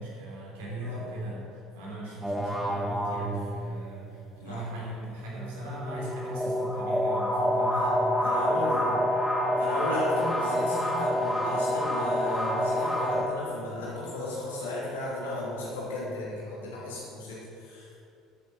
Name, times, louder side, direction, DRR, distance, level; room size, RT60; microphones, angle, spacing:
voice 1, 0.0-8.8, right 1 dB, 65° right, -4 dB, 3.1 m, -38 dB
voice 2, 0.8-1.1 4.4-4.6 7.7-7.9 8.2-9.0 9.6-17.9, left 2 dB, 70° left, -6 dB, 3.0 m, -35 dB
sound 1, 2.2-3.9 5.2-13.2, equal, 5° right, 1.7 m, -28 dB
13.0 x 8.6 x 4.3 m, 2.5 s
figure-of-eight pair, 60°, 0 cm